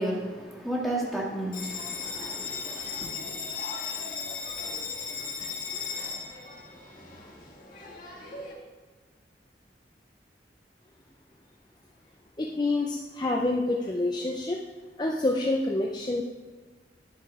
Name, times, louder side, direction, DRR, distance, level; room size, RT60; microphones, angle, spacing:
voice 1, 0.0-3.1, right 1 dB, ahead, -4 dB, 1.8 m, -33 dB
Bell, 1.5-8.5, left 5 dB, 50° left, 1.9 m, -36 dB
voice 2, 12.4-14.6 15.0-16.2, left 2 dB, 25° left, 0 dB, 0.5 m, -27 dB
11.5 x 4.9 x 4.8 m, 1.3 s
head